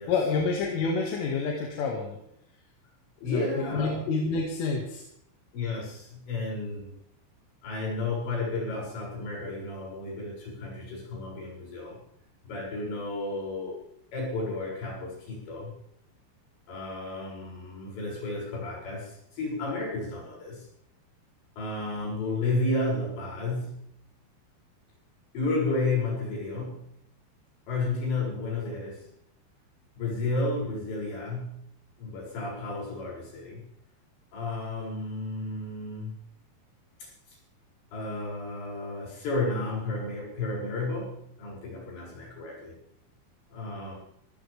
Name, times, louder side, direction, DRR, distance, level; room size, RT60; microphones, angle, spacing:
voice 1, 0.1-2.2 3.3-5.0, left 4 dB, 85° left, 0 dB, 4.7 m, -28 dB
voice 2, 3.2-4.0 5.5-7.0 7.6-12.0 12.4-13.8 14.1-15.7 16.7-20.7 21.6-23.8 25.3-26.9 27.7-29.1 30.0-31.6 32.0-33.6 34.3-36.2 37.0-37.1 37.9-42.8 43.5-44.0, left 2 dB, 65° left, -4 dB, 9.2 m, -32 dB
25.5 x 13.5 x 3.6 m, 0.74 s
omnidirectional pair, 5.6 m